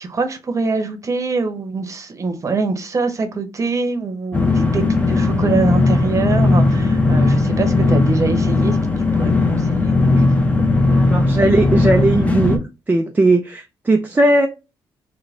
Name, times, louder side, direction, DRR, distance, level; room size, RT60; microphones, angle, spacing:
voice 1, 0.0-10.2, right 4 dB, 35° right, 0.8 m, -24 dB
sound 1, 4.3-12.6, left 3 dB, 15° left, 0.7 m, -17 dB
voice 2, 11.0-12.6 12.9-14.5, right 2 dB, 20° right, 0.4 m, -17 dB
3.2 x 2.2 x 3.6 m
cardioid pair, 85°, 9 cm